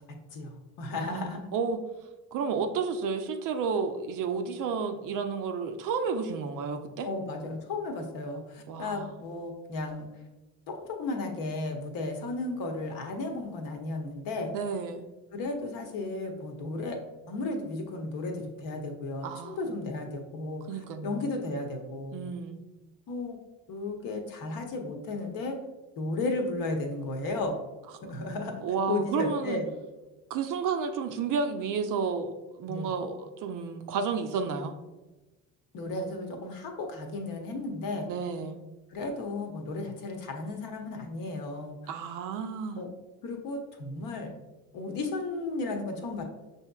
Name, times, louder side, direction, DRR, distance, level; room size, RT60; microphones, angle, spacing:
voice 1, 0.1-1.5 7.0-10.1 10.7-14.5 15.3-17.0 17.3-22.3 23.1-23.4 23.7-25.6 26.0-27.6 28.0-28.6 28.9-29.7 32.7-32.9 35.7-38.1 38.9-41.8 42.8-42.9 43.2-44.3 44.7-46.2, left 2 dB, 55° left, 4 dB, 0.9 m, -34 dB
voice 2, 0.9-1.8 2.3-7.1 8.7-9.1 14.5-15.0 19.2-19.6 20.7-21.2 22.1-22.6 28.6-29.6 30.3-34.7 38.0-38.6 41.9-42.8, right 5 dB, 50° right, 7 dB, 0.5 m, -31 dB
5.7 x 2.7 x 2.3 m, 1.1 s
hypercardioid pair, 65°, 42 cm